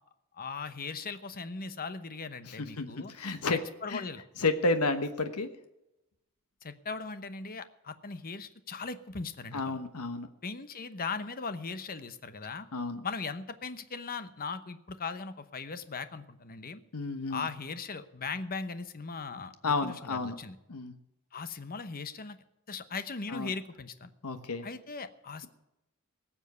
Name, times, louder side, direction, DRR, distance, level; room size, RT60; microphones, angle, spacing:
voice 1, 0.3-3.1 3.5-4.2 6.6-9.8 10.4-12.7 13.0-16.8 17.3-20.6 21.3-22.4 22.7-24.1 24.6-25.5, left 4 dB, 40° left, 11 dB, 1.0 m, -39 dB
voice 2, 2.5-3.6 3.9-4.0 4.4-5.5 9.5-10.3 12.7-13.0 16.9-17.5 19.6-20.4 20.7-21.0 23.3-23.5 24.2-24.7, left 3 dB, 85° left, 9 dB, 1.2 m, -31 dB
18.5 x 7.3 x 6.9 m, 0.90 s
head